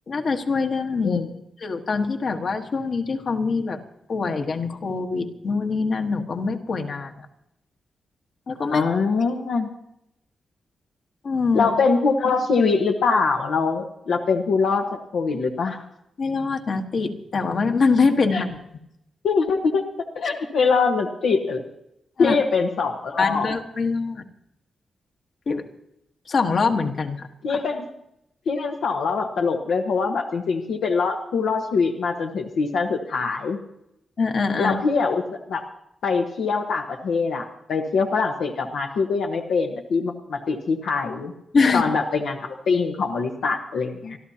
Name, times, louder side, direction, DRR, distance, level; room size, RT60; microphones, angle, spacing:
voice 1, 0.1-1.2 1.6-3.8 4.1-7.3 8.5-8.9 11.2-11.7 16.2-18.6 22.2-22.4 23.2-24.2 25.5-25.7 26.3-27.6 34.2-34.7 41.5-41.8, left 4 dB, 60° left, 4 dB, 1.4 m, -24 dB
voice 2, 8.7-9.7 11.5-14.9 15.1-15.8 18.3-18.4 19.2-19.9 20.1-21.6 22.2-23.5 27.4-27.9 28.5-33.6 34.6-35.2 35.5-35.6 36.0-41.3 41.7-44.2, left 4 dB, 85° left, 2 dB, 1.1 m, -23 dB
26.0 x 13.0 x 2.8 m, 0.80 s
cardioid pair, 90°, 0 cm